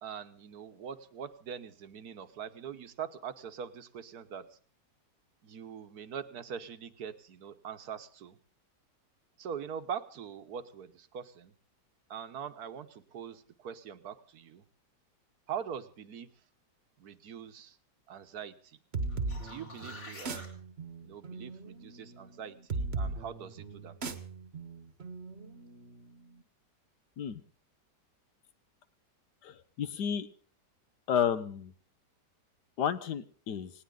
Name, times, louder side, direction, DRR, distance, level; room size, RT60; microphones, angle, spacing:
voice 1, 0.0-4.6 5.4-8.4 9.4-11.5 12.1-14.6 15.5-16.3 17.0-17.8 18.1-18.8 19.4-20.6 21.0-24.1, right 8 dB, 65° right, 11 dB, 1.5 m, -43 dB
sound 1, 18.9-26.3, right 3 dB, 40° right, 1.4 m, -38 dB
sound 2, 19.0-20.5 25.3-25.4, left 2 dB, 50° left, 4.4 m, -48 dB
voice 2, 29.4-30.3 31.1-31.7 32.8-33.7, left 8 dB, 70° left, 14 dB, 1.6 m, -31 dB
19.0 x 18.5 x 3.8 m, 0.43 s
omnidirectional pair, 1.9 m